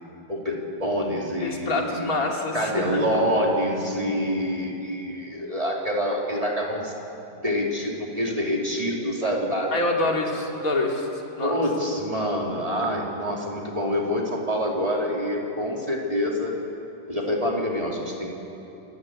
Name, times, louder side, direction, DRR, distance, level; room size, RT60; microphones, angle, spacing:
voice 1, 0.3-2.1 2.5-6.9 7.4-9.7 11.4-16.5 17.1-18.3, equal, 20° right, -1 dB, 2.8 m, -26 dB
voice 2, 1.4-3.0 9.7-11.1 11.4-11.6, left 2 dB, 55° left, 0 dB, 3.0 m, -26 dB
27.5 x 15.5 x 8.6 m, 3.0 s
omnidirectional pair, 1.8 m